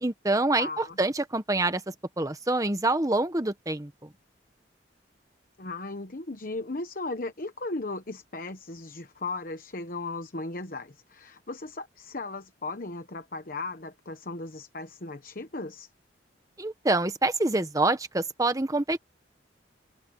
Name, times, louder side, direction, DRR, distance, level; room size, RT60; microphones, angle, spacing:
voice 1, 0.0-1.8 2.2-4.1 16.6-19.0, right 2 dB, 20° right, 1.2 m, -26 dB
voice 2, 0.6-1.0 5.6-15.9, left 3 dB, 45° left, 1.1 m, -36 dB
head